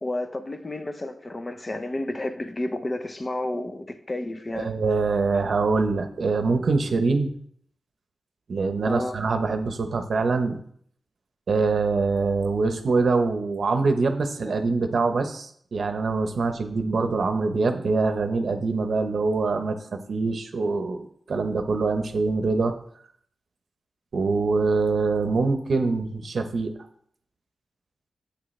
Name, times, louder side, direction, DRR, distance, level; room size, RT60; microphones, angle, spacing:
voice 1, 0.0-4.7 8.8-9.1 14.4-14.5, left 1 dB, 30° left, 0.8 m, -31 dB
voice 2, 4.5-7.3 8.5-10.6 11.5-22.7 24.1-26.7, right 4 dB, 70° right, 0.9 m, -24 dB
8.7 x 8.1 x 3.2 m
cardioid pair, 75°, 0 cm